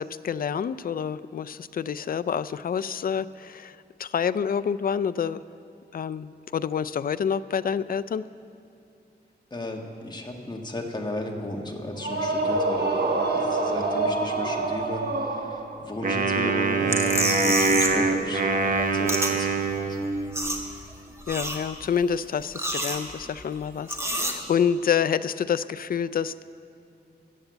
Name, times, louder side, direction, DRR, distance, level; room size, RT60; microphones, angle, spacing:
voice 1, 0.0-5.4 5.9-8.2 21.3-26.4, left 7 dB, 55° left, 15 dB, 0.4 m, -28 dB
voice 2, 9.5-20.0, left 1 dB, 25° left, 1 dB, 1.6 m, -34 dB
sound 1, 12.0-15.9, right 3 dB, 65° right, 1.4 m, -26 dB
Wind instrument woodwind instrument, 16.0-20.5, right 4 dB, 50° right, 0.9 m, -24 dB
sound 2, 16.9-18.1 18.3-19.3 19.7-19.8 20.0-20.9 21.2-21.9 22.4-23.4 23.9-24.3, right 1 dB, 15° right, 1.4 m, -29 dB
14.0 x 8.0 x 8.1 m, 2.7 s
wide cardioid pair, 100°, 17 cm